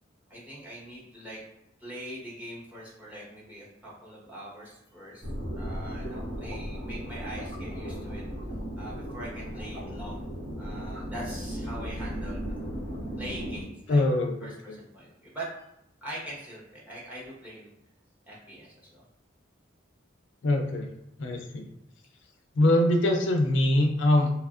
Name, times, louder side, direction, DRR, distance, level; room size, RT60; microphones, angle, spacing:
voice 1, 0.3-1.4 1.8-5.3 5.5-8.2 8.8-10.3 10.6-12.6 13.2-14.0 14.4-15.5 16.0-17.7 18.3-19.0, right 1 dB, 10° right, -5 dB, 0.8 m, -42 dB
sound 1, 5.2-13.6, equal, 70° right, 1.4 m, -36 dB
voice 2, 13.9-14.8 20.4-20.9 21.2-21.7 22.6-24.3, left 1 dB, 65° left, 3 dB, 0.4 m, -23 dB
2.9 x 2.4 x 2.4 m, 0.84 s
head